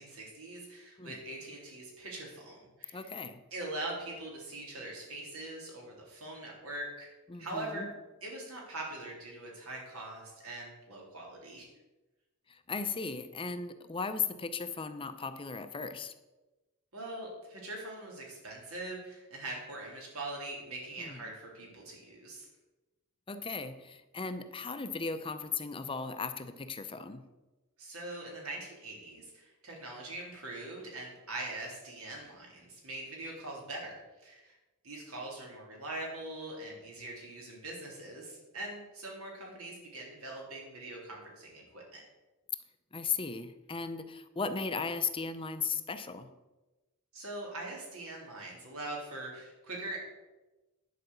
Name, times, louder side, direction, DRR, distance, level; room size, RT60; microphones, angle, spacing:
voice 1, 0.0-3.0 3.5-7.1 7.4-7.9 8.2-11.7 16.9-22.5 27.8-33.9 34.2-34.6 34.8-42.0 47.1-50.0, right 2 dB, 85° right, 3.7 m, -42 dB
voice 2, 2.9-3.5 7.3-7.9 12.5-16.1 21.0-21.2 23.3-27.3 42.9-46.4, left 5 dB, 25° left, 0.6 m, -37 dB
11.0 x 5.0 x 7.9 m
head